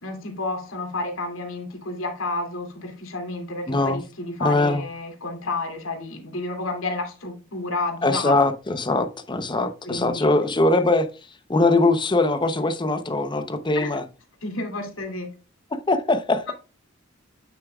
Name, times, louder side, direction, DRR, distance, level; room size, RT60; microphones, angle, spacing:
voice 1, 0.0-8.3 9.8-10.3 13.7-14.0 14.4-15.3, left 2 dB, 85° left, 2.5 m, -30 dB
voice 2, 3.7-4.0 4.4-4.9 8.0-11.1 11.5-14.0 15.9-16.4, left 2 dB, 25° left, 0.8 m, -21 dB
9.0 x 7.2 x 2.4 m
head